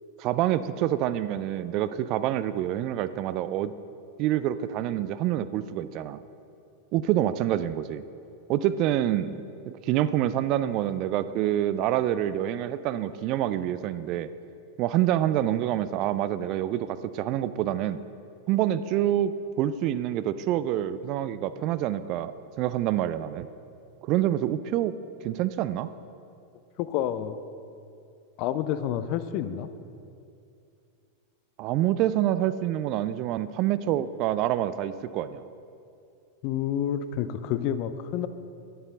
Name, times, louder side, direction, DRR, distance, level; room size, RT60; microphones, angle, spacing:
voice 1, 0.2-3.7 4.2-6.2 6.9-8.0 8.5-14.3 14.8-18.0 18.5-19.3 19.6-22.3 22.6-23.5 24.0-24.9 25.2-25.9 31.6-35.4, right 12 dB, 40° right, 14 dB, 0.4 m, -27 dB
voice 2, 26.8-27.4 28.4-29.7 36.4-38.3, left 10 dB, 45° left, 12 dB, 0.5 m, -29 dB
11.0 x 9.9 x 3.8 m, 2.5 s
figure-of-eight pair, 90°, 0 cm